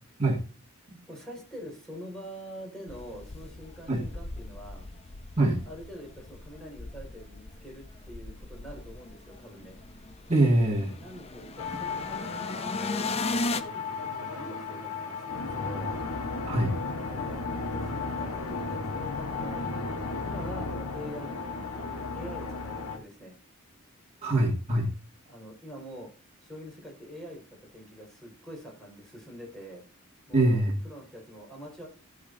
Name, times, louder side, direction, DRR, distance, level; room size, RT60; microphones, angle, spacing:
voice 1, 1.1-4.9 5.7-9.8 10.9-15.9 17.1-17.4 17.7-19.6 19.9-23.3 25.3-26.1 26.4-27.4 27.7-29.8 30.3-31.9, equal, ahead, -2 dB, 4.9 m, -45 dB
sound 1, 2.9-13.6, left 3 dB, 30° left, 0.6 m, -38 dB
voice 2, 10.3-10.9 16.5-16.7 24.2-24.9 30.3-30.8, right 2 dB, 30° right, -3 dB, 2.0 m, -23 dB
sound 2, 11.6-23.0, left 4 dB, 85° left, 1.4 m, -34 dB
15.0 x 8.0 x 2.7 m, 0.35 s
head